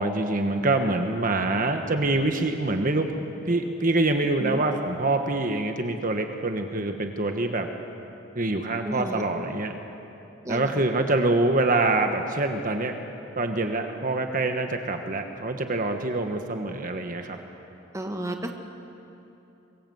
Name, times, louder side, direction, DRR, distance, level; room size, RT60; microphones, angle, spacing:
voice 1, 0.0-7.7 8.3-9.8 10.5-12.9 13.4-17.4, right 2 dB, 40° right, 5 dB, 1.3 m, -25 dB
voice 2, 8.8-9.2 10.4-10.7 17.9-18.5, right 1 dB, 15° right, 4 dB, 1.5 m, -32 dB
25.0 x 22.0 x 7.9 m, 2.9 s
head